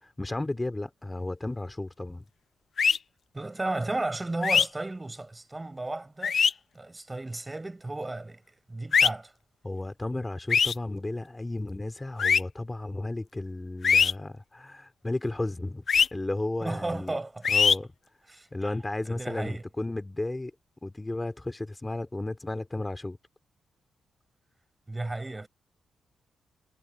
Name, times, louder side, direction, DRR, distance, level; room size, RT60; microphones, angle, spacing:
voice 1, 0.0-2.2 9.6-15.8 16.1-17.1 17.5-17.9 18.5-20.5 20.8-23.2, left 2 dB, 20° left, 2.9 m, -33 dB
sound 1, 2.8-3.0 4.4-4.7 6.2-6.5 8.9-9.1 10.5-10.7 12.2-12.4 13.8-14.1 15.9-16.1 17.4-17.8, left 6 dB, 60° left, 0.7 m, -21 dB
voice 2, 3.3-6.4 6.7-8.4 8.7-9.3 16.6-17.5 18.3-18.8 19.1-19.6 24.9-25.5, right 2 dB, 20° right, 5.4 m, -34 dB
supercardioid pair, 55°, 0 cm